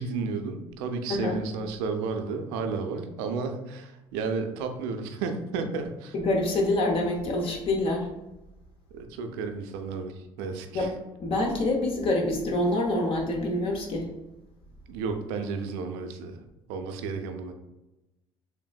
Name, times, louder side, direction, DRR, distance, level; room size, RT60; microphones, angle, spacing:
voice 1, 0.0-6.1 8.9-10.9 14.9-16.4 16.7-17.5, right 4 dB, 85° right, 6 dB, 0.4 m, -32 dB
voice 2, 6.1-8.1 10.7-10.9 11.2-14.1, left 2 dB, 55° left, 1 dB, 0.6 m, -26 dB
3.5 x 2.5 x 2.2 m, 0.97 s
supercardioid pair, 75°, 12 cm